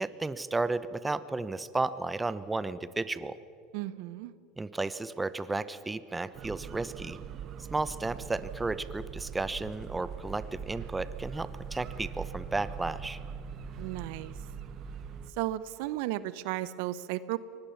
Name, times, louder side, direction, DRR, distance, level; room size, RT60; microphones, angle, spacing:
voice 1, 0.0-3.4 4.6-7.2 7.7-13.2, right 3 dB, 15° right, 15 dB, 0.9 m, -33 dB
voice 2, 3.7-4.3 13.8-14.3 15.4-17.4, right 15 dB, 70° right, 16 dB, 0.8 m, -34 dB
sound 1, 6.3-15.3, right 7 dB, 50° right, 1.3 m, -42 dB
24.0 x 19.0 x 7.2 m, 2.4 s
hypercardioid pair, 90°, 0 cm